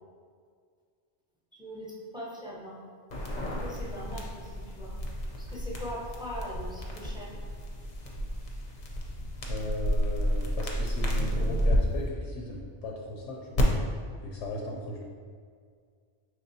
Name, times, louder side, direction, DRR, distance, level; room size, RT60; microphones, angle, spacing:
voice 1, 1.5-2.8 3.6-4.9 5.4-7.3, equal, 5° right, -6 dB, 0.6 m, -41 dB
sound 1, 3.1-11.8 13.5-13.6, equal, 45° left, 0.6 m, -31 dB
voice 2, 9.5-13.7 14.2-15.0, left 1 dB, 80° left, -2 dB, 0.9 m, -37 dB
5.9 x 3.2 x 2.7 m, 2.1 s
omnidirectional pair, 1.2 m